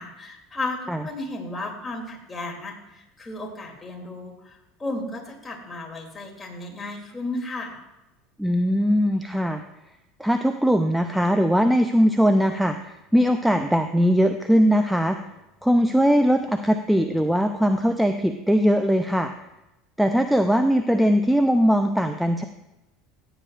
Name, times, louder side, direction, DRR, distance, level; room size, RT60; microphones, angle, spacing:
voice 1, 0.0-7.8, left 2 dB, 20° left, 0 dB, 2.8 m, -34 dB
voice 2, 8.4-9.6 10.2-15.2 15.6-19.3 20.0-22.4, equal, ahead, 7 dB, 0.6 m, -20 dB
15.0 x 9.2 x 2.5 m, 0.95 s
hypercardioid pair, 75°, 0 cm